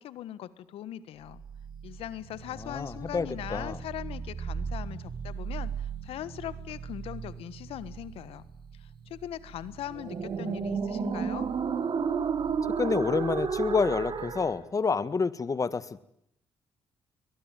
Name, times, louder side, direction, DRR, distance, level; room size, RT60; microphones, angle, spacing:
voice 1, 0.0-1.4 1.8-8.5 8.7-11.5, left 12 dB, 80° left, 17 dB, 1.5 m, -40 dB
sound 1, 1.3-14.6, right 6 dB, 55° right, 3.4 m, -34 dB
voice 2, 2.6-3.8 12.8-16.0, left 5 dB, 35° left, 17 dB, 1.7 m, -28 dB
22.5 x 20.5 x 9.2 m, 0.73 s
supercardioid pair, 70°, 10 cm